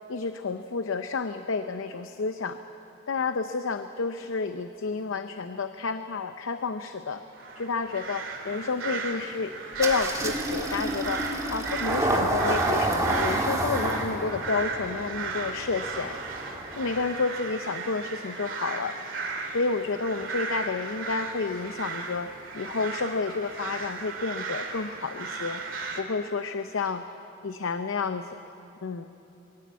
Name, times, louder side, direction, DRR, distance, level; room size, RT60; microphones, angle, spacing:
voice 1, 0.1-2.6 3.1-7.2 7.6-9.5 9.8-11.2 11.5-16.2 16.7-18.9 19.5-25.6 26.0-27.0 27.4-28.3 28.8-29.1, left 4 dB, 75° left, 9 dB, 0.6 m, -30 dB
sound 1, 7.3-26.0, right 4 dB, 70° right, 2.3 m, -36 dB
Engine starting, 9.8-17.1, right 1 dB, 15° right, 1.9 m, -29 dB
23.0 x 15.5 x 8.3 m, 3.0 s
head